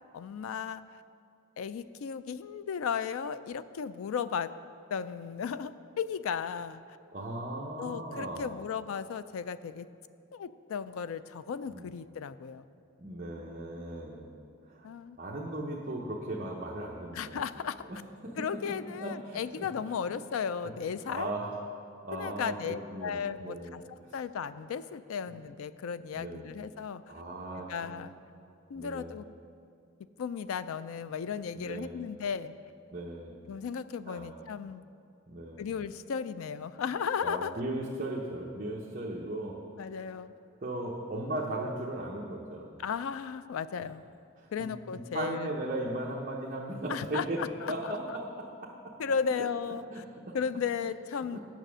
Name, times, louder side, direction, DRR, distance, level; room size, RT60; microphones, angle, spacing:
voice 1, 0.1-1.0 1.6-4.5 4.9-6.8 7.8-9.9 10.3-12.6 14.8-15.2 17.1-17.8 18.4-21.3 22.1-27.0 27.7-28.1 28.7-29.3 30.2-32.5 33.5-34.8 35.6-37.5 39.8-40.3 42.8-44.0 44.5-45.5 46.9-48.2 49.0-50.0 50.3-51.4, left 6 dB, 85° left, 14 dB, 0.4 m, -35 dB
voice 2, 7.1-8.5 11.7-11.9 13.0-14.3 14.7-14.8 15.2-17.4 17.9-18.0 18.2-18.4 19.0-19.7 20.1-20.2 21.0-21.5 22.0-24.1 26.1-26.6 27.1-28.1 28.7-29.1 31.6-32.1 32.9-33.3 34.1-34.3 35.3-35.7 37.2-39.6 40.6-42.6 44.4-47.4 47.7-48.9 49.3-49.4 49.9-50.4 51.3-51.4, right 1 dB, 40° right, -3 dB, 0.8 m, -37 dB
9.0 x 6.9 x 6.2 m, 2.5 s
head